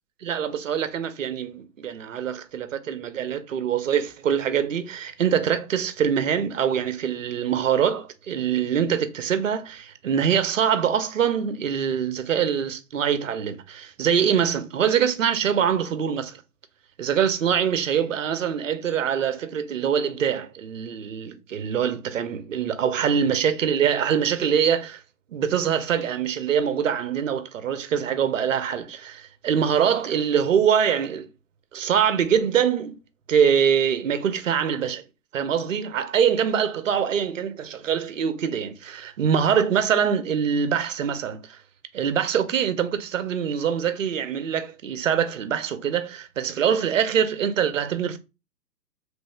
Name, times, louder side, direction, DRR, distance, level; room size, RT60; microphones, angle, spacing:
voice 1, 0.2-16.4 17.0-25.0 25.3-31.3 31.7-32.9 33.3-35.0 35.3-41.6 41.9-48.2, right 8 dB, 55° right, 0.5 m, -24 dB
3.1 x 2.6 x 3.2 m
hypercardioid pair, 165°, 50 cm